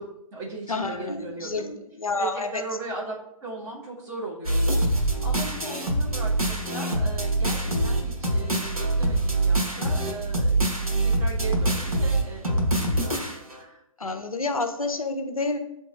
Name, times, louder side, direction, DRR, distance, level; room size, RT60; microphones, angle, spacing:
voice 1, 0.0-1.7 2.2-4.8 5.2-10.6 11.0-13.2 13.5-13.8, right 2 dB, 15° right, -6 dB, 1.1 m, -38 dB
voice 2, 0.7-2.6 14.0-15.6, left 3 dB, 80° left, 7 dB, 0.6 m, -29 dB
sound 1, 4.4-13.6, right 2 dB, 85° right, 1.0 m, -24 dB
7.8 x 2.9 x 2.3 m, 0.82 s
figure-of-eight pair, 125°, 18 cm